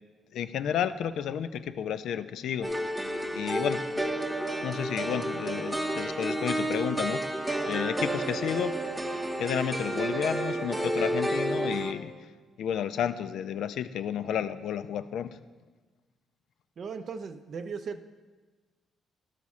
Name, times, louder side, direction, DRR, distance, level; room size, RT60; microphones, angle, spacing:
voice 1, 0.3-2.7 3.3-3.8 4.6-7.2 7.7-8.7 9.4-12.1 12.6-15.4, left 9 dB, 75° left, 12 dB, 0.3 m, -31 dB
sound 1, 2.6-11.9, right 1 dB, 5° right, 0.8 m, -31 dB
voice 2, 16.8-18.0, right 5 dB, 55° right, 8 dB, 0.4 m, -37 dB
12.0 x 4.1 x 4.8 m, 1.3 s
cardioid pair, 90°, 0 cm